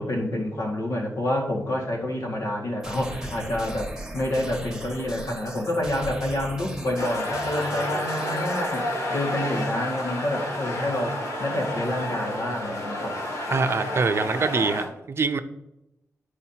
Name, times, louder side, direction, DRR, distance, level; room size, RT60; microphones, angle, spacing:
voice 1, 0.0-13.2, left 1 dB, 85° left, -1 dB, 1.9 m, -28 dB
sound 1, 2.8-8.8, right 1 dB, 10° right, 1.3 m, -38 dB
sound 2, 7.0-14.9, left 1 dB, 65° left, 2.1 m, -30 dB
voice 2, 13.5-15.4, right 4 dB, 45° right, 9 dB, 0.5 m, -24 dB
11.0 x 4.8 x 2.9 m, 0.86 s
wide cardioid pair, 125°, 6 cm